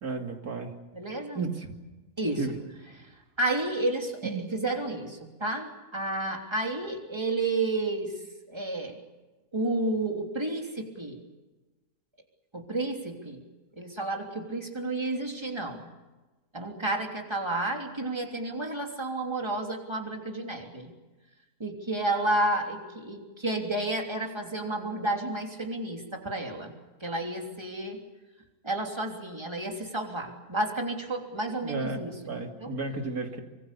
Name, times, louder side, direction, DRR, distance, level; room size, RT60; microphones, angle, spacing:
voice 1, 0.0-0.7 1.3-1.7 2.4-2.6 4.2-4.5 31.6-33.4, right 3 dB, 75° right, 3 dB, 3.1 m, -33 dB
voice 2, 0.9-1.4 2.2-2.4 3.4-8.1 8.5-9.0 9.5-11.2 12.5-13.4 13.8-15.9 16.5-20.9 21.6-26.7 27.0-28.0 28.6-32.1 32.6-32.7, right 2 dB, 15° right, 2 dB, 3.3 m, -31 dB
25.5 x 24.0 x 7.0 m, 1.2 s
omnidirectional pair, 1.6 m